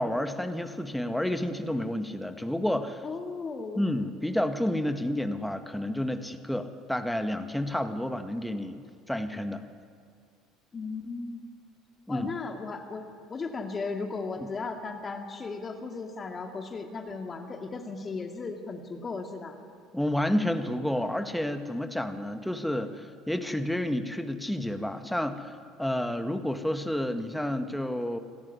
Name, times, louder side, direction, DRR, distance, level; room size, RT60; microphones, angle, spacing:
voice 1, 0.0-3.1 3.8-9.6 12.1-12.3 14.4-14.5 19.9-28.2, left 1 dB, 5° left, 8 dB, 1.9 m, -30 dB
voice 2, 3.0-3.8 10.7-11.4 12.1-19.5, left 4 dB, 30° left, 4 dB, 2.2 m, -36 dB
26.5 x 13.5 x 9.9 m, 2.2 s
figure-of-eight pair, 65°, 0 cm